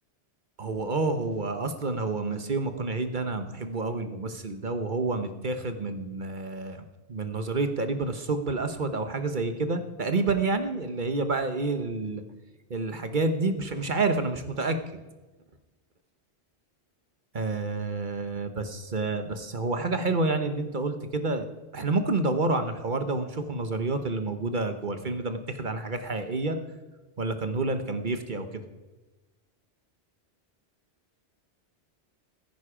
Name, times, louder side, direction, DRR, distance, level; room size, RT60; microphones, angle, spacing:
voice 1, 0.6-12.2 12.7-14.8 17.3-21.5 21.7-26.6 27.2-28.6, right 3 dB, 45° right, 8 dB, 1.2 m, -29 dB
15.0 x 15.0 x 5.0 m, 1.1 s
omnidirectional pair, 1.2 m